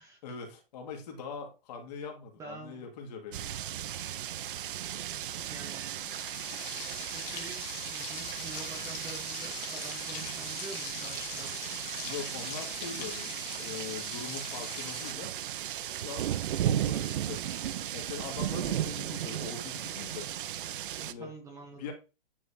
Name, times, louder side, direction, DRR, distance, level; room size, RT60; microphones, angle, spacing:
voice 1, 0.2-3.6 12.0-15.3 15.9-17.4 17.9-20.3 21.0-21.3 21.8-21.9, left 5 dB, 45° left, 2 dB, 2.1 m, -42 dB
voice 2, 2.4-2.9 5.5-6.0 7.1-11.6 21.2-21.9, right 3 dB, 10° right, 1 dB, 0.9 m, -46 dB
sound 1, 3.3-21.1, right 11 dB, 60° right, 0.6 m, -36 dB
Frying (food), 6.0-15.1, left 8 dB, 20° left, 1.2 m, -43 dB
9.6 x 4.1 x 2.7 m, 0.30 s
hypercardioid pair, 165°, 30 cm